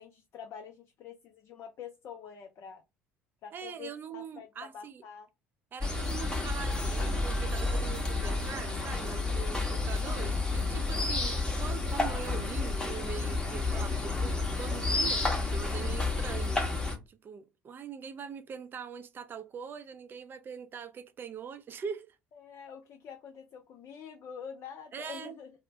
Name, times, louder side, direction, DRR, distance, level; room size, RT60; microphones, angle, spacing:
voice 1, 0.0-2.8 3.4-5.3 22.3-25.5, left 7 dB, 40° left, 0.4 m, -46 dB
voice 2, 3.5-5.0 5.7-16.6 17.1-22.2 24.9-25.4, right 7 dB, 30° right, 0.4 m, -42 dB
sound 1, 5.8-17.0, left 3 dB, 10° left, 0.7 m, -30 dB
2.4 x 2.0 x 3.1 m
figure-of-eight pair, 60°, 7 cm